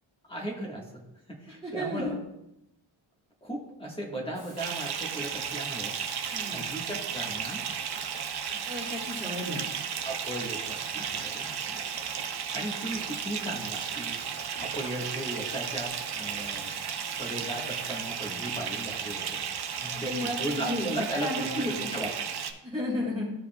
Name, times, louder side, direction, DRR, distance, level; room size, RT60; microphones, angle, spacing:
voice 1, 0.3-1.0 1.3-2.2 3.4-6.0 6.5-7.6 10.0-11.8 12.5-14.2 14.6-16.7 17.2-19.5 19.8-22.1, right 1 dB, 10° left, -2 dB, 1.4 m, -36 dB
voice 2, 1.5-2.1 6.3-6.6 8.7-9.6 18.3-18.5 19.9-21.9 22.6-23.3, left 1 dB, 10° right, -8 dB, 1.5 m, -33 dB
Frying (food), 4.3-18.1, left 2 dB, 40° left, 2.0 m, -52 dB
Bathtub (filling or washing) / Fill (with liquid), 4.6-22.5, right 7 dB, 55° right, 0.7 m, -34 dB
13.5 x 4.9 x 2.2 m, 0.87 s
wide cardioid pair, 175°, 47 cm